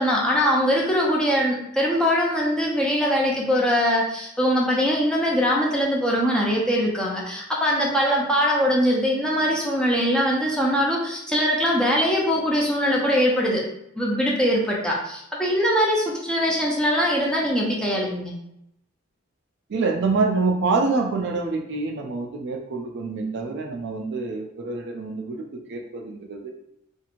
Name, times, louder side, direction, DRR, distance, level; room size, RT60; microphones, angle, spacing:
voice 1, 0.0-13.6 14.0-18.3, equal, 5° left, -3 dB, 0.5 m, -22 dB
voice 2, 19.7-26.5, right 3 dB, 55° right, 2 dB, 0.4 m, -26 dB
2.9 x 2.5 x 2.5 m, 0.78 s
head